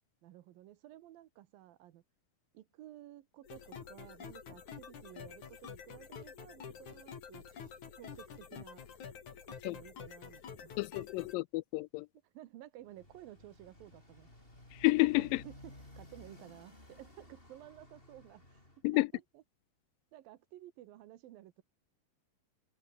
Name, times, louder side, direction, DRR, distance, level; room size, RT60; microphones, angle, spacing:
voice 1, 0.2-2.0 2.5-8.8 9.4-10.7 12.2-14.3 15.2-19.4 20.1-21.6, right 14 dB, 90° right, 3.0 m, -54 dB
sound 1, 3.4-11.3, left 7 dB, 60° left, 4.4 m, -49 dB
voice 2, 10.8-12.1 14.7-15.4 18.8-19.1, left 22 dB, 85° left, 2.2 m, -30 dB
Motorcycle, 12.8-18.8, left 1 dB, 15° left, 5.9 m, -56 dB
omnidirectional pair, 4.0 m